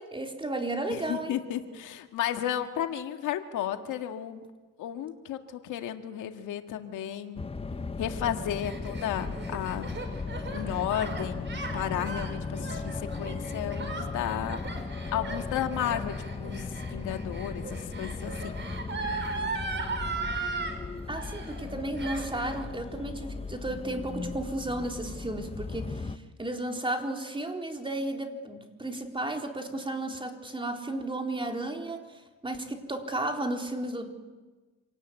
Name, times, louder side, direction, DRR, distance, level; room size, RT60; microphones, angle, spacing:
voice 1, 0.0-1.3 21.1-32.0 32.4-34.1, right 1 dB, 15° right, 3 dB, 3.9 m, -33 dB
voice 2, 0.9-4.5 4.8-7.4 8.0-10.1 10.5-14.6 15.1-18.6, left 11 dB, 90° left, 6 dB, 1.9 m, -33 dB
sound 1, 7.4-26.2, left 4 dB, 20° left, 1.0 m, -37 dB
Gasp, 8.3-20.8 21.1-21.7 22.0-22.6, right 4 dB, 40° right, 5.5 m, -37 dB
27.0 x 18.5 x 9.3 m, 1.3 s
cardioid pair, 90°, 30 cm